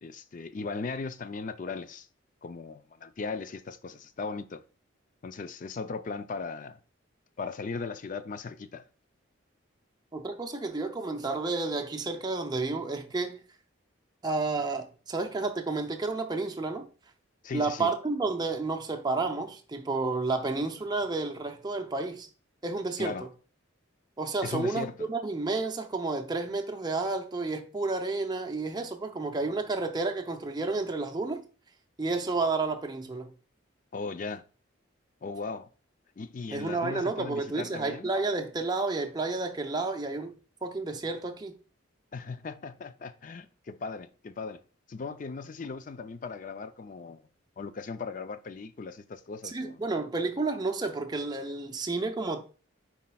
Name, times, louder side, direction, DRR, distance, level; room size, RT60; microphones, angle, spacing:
voice 1, 0.0-2.1 2.4-4.6 5.2-6.8 7.4-8.9 17.4-17.9 23.0-23.3 24.4-25.1 33.9-34.4 35.2-35.7 36.2-38.1 42.1-44.6 44.9-47.3 47.6-49.8, left 4 dB, 40° left, 0.4 m, -38 dB
voice 2, 10.1-13.4 14.2-16.9 17.5-22.3 22.6-23.2 24.2-31.4 32.0-33.3 36.5-41.6 49.5-52.4, right 3 dB, 20° right, 0.5 m, -31 dB
9.8 x 4.2 x 2.3 m
head